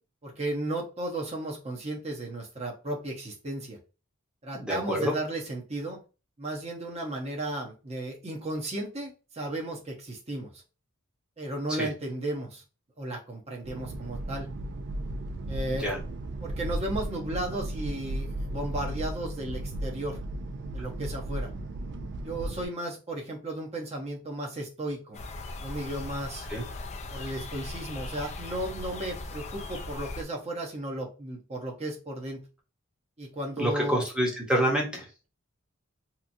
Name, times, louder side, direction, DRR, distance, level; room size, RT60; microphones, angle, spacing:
voice 1, 0.2-3.8 4.4-6.0 6.4-10.5 11.4-12.6 13.0-14.5 15.5-15.9 16.4-20.2 20.7-21.5 22.2-25.2 25.6-26.4 27.1-32.4 33.2-34.0, right 1 dB, 30° right, -1 dB, 0.8 m, -34 dB
voice 2, 4.5-5.2 11.8-11.9 15.8-16.0 26.5-26.6 33.6-35.0, equal, 5° right, -2 dB, 0.8 m, -27 dB
sound 1, 13.6-22.7, right 1 dB, 55° right, 0.3 m, -35 dB
sound 2, 25.1-30.2, left 2 dB, 35° left, 0.4 m, -39 dB
2.9 x 2.4 x 2.5 m, 0.33 s
head